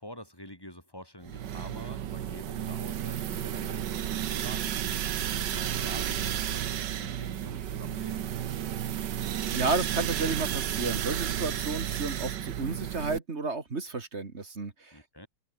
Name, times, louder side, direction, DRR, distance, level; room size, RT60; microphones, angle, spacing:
voice 1, 0.0-4.8 5.2-8.3 14.9-15.3, left 1 dB, 10° left, 5.1 m, -47 dB
sound 1, 1.3-13.2, right 10 dB, 65° right, 1.6 m, -32 dB
voice 2, 9.5-15.0, right 3 dB, 35° right, 2.2 m, -32 dB
omnidirectional pair, 2.1 m